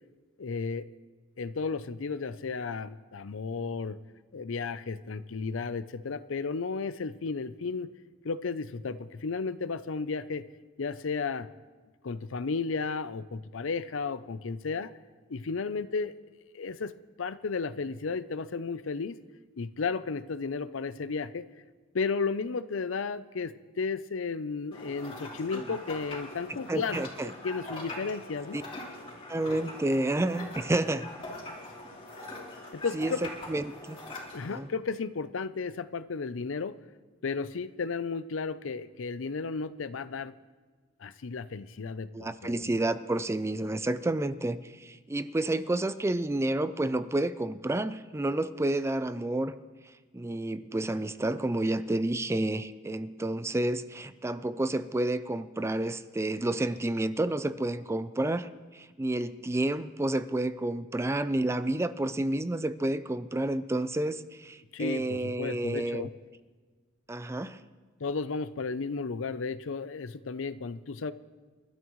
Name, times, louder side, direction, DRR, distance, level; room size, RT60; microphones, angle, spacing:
voice 1, 0.4-0.8 1.4-4.0 4.3-7.9 8.2-10.4 10.8-11.5 12.0-14.9 15.3-16.1 16.5-16.9 17.2-19.2 19.6-21.5 21.9-27.0 27.4-28.6 32.7-33.2 34.3-36.7 37.2-40.3 41.0-42.8 64.7-66.1 68.0-71.1, left 4 dB, 70° left, 14 dB, 0.6 m, -33 dB
sound 1, 24.7-34.6, left 2 dB, 30° left, 3.5 m, -43 dB
voice 2, 26.7-27.3 28.5-28.6 29.3-31.1 32.9-34.0 34.5-34.7 42.1-49.5 50.1-66.1 67.1-67.6, right 1 dB, 15° right, 13 dB, 0.4 m, -30 dB
29.0 x 13.0 x 3.1 m, 1.4 s
head